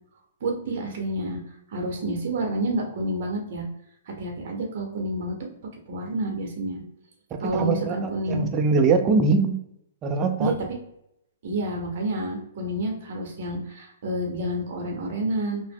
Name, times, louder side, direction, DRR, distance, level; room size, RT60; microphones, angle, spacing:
voice 1, 0.4-1.4 1.7-3.6 4.2-5.3 5.9-6.8 7.4-8.5 10.4-10.5 11.4-15.6, right 1 dB, 60° right, 1 dB, 0.7 m, -29 dB
voice 2, 7.3-9.6 10.0-10.5, right 4 dB, 25° right, 5 dB, 0.4 m, -22 dB
2.8 x 2.0 x 3.4 m, 0.78 s
hypercardioid pair, 140°, 0 cm